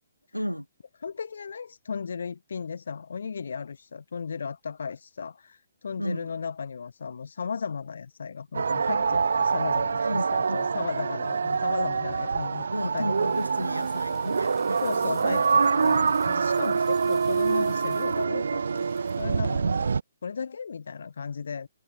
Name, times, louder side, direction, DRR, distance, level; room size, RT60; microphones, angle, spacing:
voice 1, 0.3-0.7 6.0-6.3 10.0-10.7 12.7-14.8 15.3-15.4 19.6-19.8, equal, 90° left, 1.8 m, -33 dB
voice 2, 1.0-12.7 12.9-13.4 14.8-19.9 20.2-21.7, left 6 dB, 60° left, 0.8 m, -35 dB
sound 1, 8.5-20.0, right 5 dB, 60° right, 0.6 m, -25 dB
sound 2, 13.1-19.3, left 11 dB, 15° left, 7.9 m, -56 dB
figure-of-eight pair, 130°, 0 cm